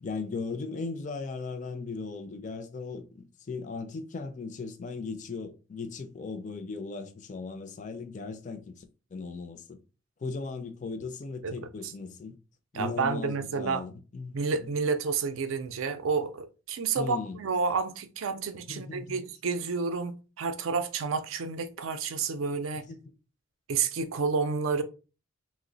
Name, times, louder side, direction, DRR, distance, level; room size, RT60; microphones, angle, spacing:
voice 1, 0.0-8.9 9.1-9.8 10.2-12.4 12.7-14.8 17.0-17.4 18.7-19.3 22.7-23.1, left 4 dB, 35° left, 0.4 m, -38 dB
voice 2, 12.7-13.8 14.3-22.9 23.7-24.8, right 5 dB, 70° right, 0.4 m, -30 dB
2.9 x 2.0 x 3.8 m
head